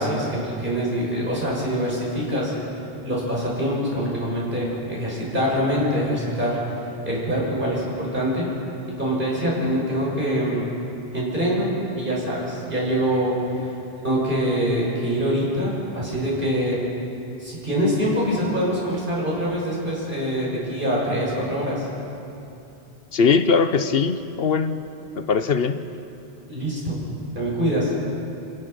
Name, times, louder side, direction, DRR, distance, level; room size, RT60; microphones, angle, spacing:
voice 1, 0.0-2.5 3.0-8.5 9.0-10.7 11.1-13.3 13.6-13.8 14.0-16.8 17.4-21.9 26.5-27.0 27.3-27.9, equal, 55° right, -5 dB, 6.8 m, -24 dB
voice 2, 23.1-24.8 25.2-25.8, left 5 dB, 70° left, 10 dB, 1.1 m, -21 dB
29.0 x 16.5 x 6.9 m, 2.8 s
omnidirectional pair, 1.0 m